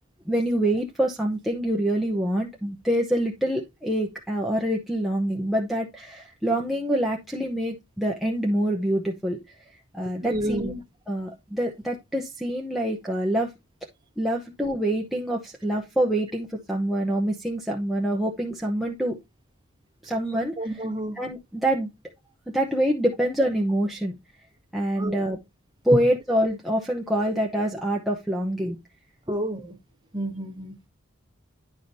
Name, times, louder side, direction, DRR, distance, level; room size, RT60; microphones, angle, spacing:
voice 1, 0.3-9.6 9.9-10.8 11.1-13.5 14.2-19.2 20.0-20.9 21.2-21.9 22.5-24.1 24.7-25.4 25.8-28.8, right 1 dB, ahead, 0.8 m, -26 dB
voice 2, 10.2-10.8 20.6-21.2 25.0-25.2 25.9-26.0 29.3-29.8 30.1-30.8, right 1 dB, 20° right, 1.4 m, -29 dB
10.5 x 4.9 x 2.7 m
head